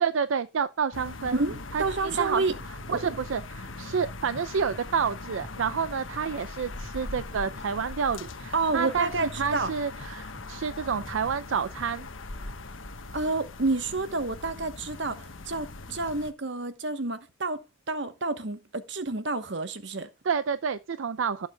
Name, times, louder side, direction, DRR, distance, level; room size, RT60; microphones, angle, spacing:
voice 1, 0.0-1.3 1.7-2.4 2.9-9.1 9.4-12.1 20.2-21.5, right 6 dB, 85° right, 0.5 m, -29 dB
sound 1, 0.9-16.3, left 2 dB, 85° left, 1.2 m, -40 dB
voice 2, 1.3-2.6 2.9-3.0 8.5-9.7 13.1-20.1, right 3 dB, 65° right, 1.2 m, -29 dB
sound 2, 6.6-12.8, left 1 dB, 35° right, 5.2 m, -53 dB
17.5 x 7.2 x 2.3 m
head